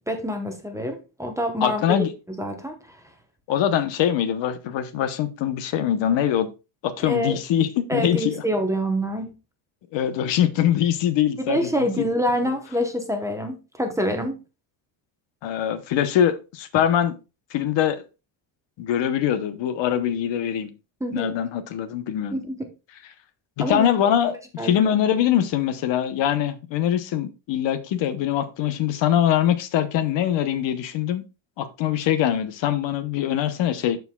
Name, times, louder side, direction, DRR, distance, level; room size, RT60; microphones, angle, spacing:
voice 1, 0.1-2.0 2.4-3.0 7.0-7.4 7.9-9.3 11.4-14.4 21.0-21.3 22.3-22.7 23.6-23.9 24.6-25.0, equal, 5° right, 0.8 m, -26 dB
voice 2, 1.6-2.1 3.5-6.5 6.8-8.4 9.9-11.9 15.4-17.2 17.5-18.0 18.8-20.7 21.1-22.4 23.6-24.4 24.6-31.2 31.6-34.0, left 10 dB, 60° left, 0.9 m, -23 dB
13.0 x 4.7 x 2.2 m
cardioid pair, 165°, 49 cm